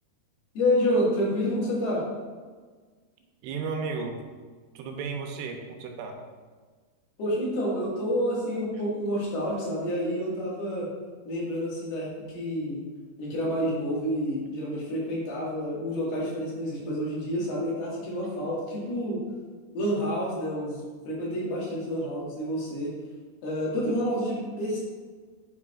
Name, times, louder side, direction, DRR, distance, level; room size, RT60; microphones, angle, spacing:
voice 1, 0.6-2.0 7.2-10.9 11.3-12.8 13.2-19.2 19.7-22.9 23.4-24.8, equal, 70° left, -6 dB, 3.7 m, -29 dB
voice 2, 3.4-4.2 4.8-6.2, right 5 dB, 85° right, 3 dB, 2.8 m, -34 dB
7.9 x 7.0 x 2.4 m, 1.5 s
omnidirectional pair, 4.7 m